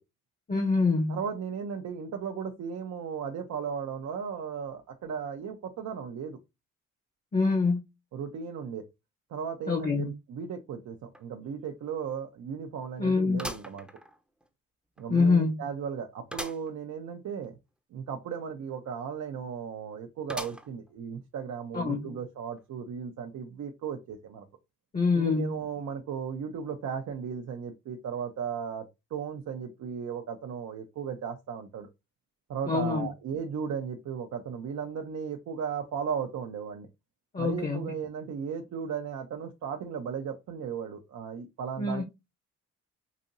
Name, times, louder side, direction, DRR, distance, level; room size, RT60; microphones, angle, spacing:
voice 1, 0.5-1.2 7.3-7.8 9.7-10.1 13.0-13.5 15.1-15.5 21.7-22.2 24.9-25.5 32.7-33.1 37.3-37.9 41.8-42.0, left 4 dB, 25° left, 0.9 m, -25 dB
voice 2, 1.1-6.4 8.1-8.8 9.3-13.9 15.0-17.6 17.9-24.4 25.1-28.8 29.1-31.9 32.5-36.9 37.4-42.0, right 7 dB, 65° right, 0.8 m, -36 dB
sound 1, 11.1-11.2 11.7-11.8 13.4-14.5 15.0-15.1 16.3-16.7 17.1-17.2 17.4-17.5 20.3-20.9 21.5-21.6 22.6-22.7, equal, 5° right, 0.7 m, -40 dB
5.0 x 2.7 x 2.6 m
cardioid pair, 90°, 30 cm